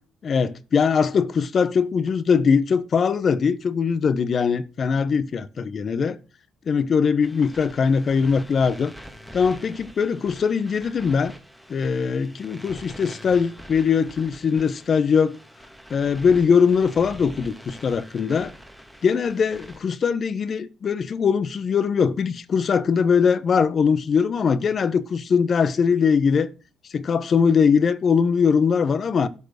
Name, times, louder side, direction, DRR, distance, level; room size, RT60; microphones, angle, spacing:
voice 1, 0.2-6.2 6.7-8.9 9.3-11.3 11.7-15.4 15.9-18.5 19.0-26.5 26.9-29.3, left 6 dB, 50° left, 0.8 m, -21 dB
sound 1, 7.2-19.8, equal, ahead, 1.7 m, -44 dB
12.0 x 4.6 x 6.4 m
cardioid pair, 90°, 0 cm